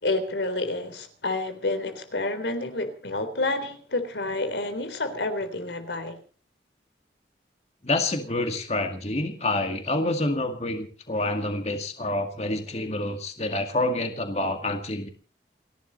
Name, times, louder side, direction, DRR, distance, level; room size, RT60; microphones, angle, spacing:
voice 1, 0.0-6.2, left 2 dB, 90° left, 3.7 m, -29 dB
voice 2, 7.8-15.1, left 2 dB, 35° left, 2.2 m, -27 dB
30.0 x 11.5 x 4.2 m
head